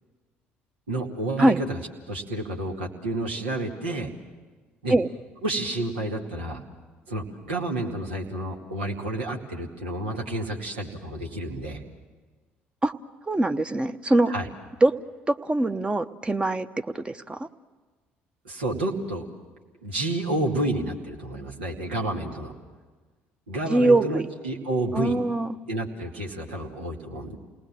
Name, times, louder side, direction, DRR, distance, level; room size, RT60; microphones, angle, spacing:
voice 1, 0.9-1.8 2.1-4.1 4.8-5.0 5.4-6.6 7.1-11.8 14.3-14.5 18.4-19.3 19.8-22.5 23.5-25.2 25.7-27.4, right 2 dB, 80° right, 0 dB, 2.3 m, -30 dB
voice 2, 13.3-14.3 14.8-14.9 15.3-17.5 23.7-24.3 24.9-25.5, right 2 dB, 15° right, 9 dB, 1.0 m, -22 dB
28.5 x 19.5 x 7.6 m, 1.4 s
figure-of-eight pair, 55°, 6 cm